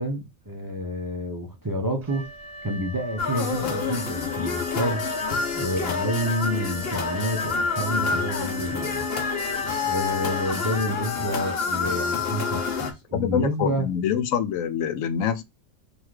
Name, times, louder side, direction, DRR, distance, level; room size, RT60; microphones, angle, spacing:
voice 1, 0.0-2.3 2.6-5.1 5.5-9.1 9.8-13.9, equal, 25° right, 0.4 m, -29 dB
Wind instrument woodwind instrument, 2.0-11.5, equal, 45° right, 0.9 m, -38 dB
sound 1, 3.2-12.9, left 5 dB, 50° left, 0.9 m, -28 dB
voice 2, 13.1-15.4, left 8 dB, 75° left, 1.0 m, -25 dB
3.9 x 2.5 x 4.7 m
omnidirectional pair, 1.4 m